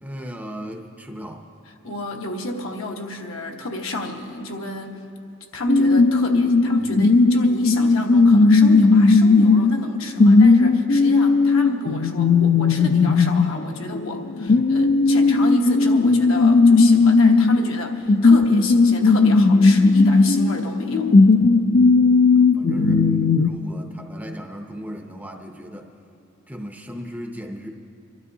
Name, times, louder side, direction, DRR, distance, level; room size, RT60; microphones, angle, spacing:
voice 1, 0.0-1.5 14.5-14.8 22.3-23.1 23.4-25.9 26.5-27.7, equal, 5° right, 2 dB, 0.6 m, -36 dB
voice 2, 1.8-5.0 5.5-21.1, left 1 dB, 70° left, 2 dB, 1.1 m, -30 dB
sound 1, 5.7-23.5, left 3 dB, 45° left, 0.3 m, -16 dB
29.0 x 12.5 x 2.7 m, 2.5 s
head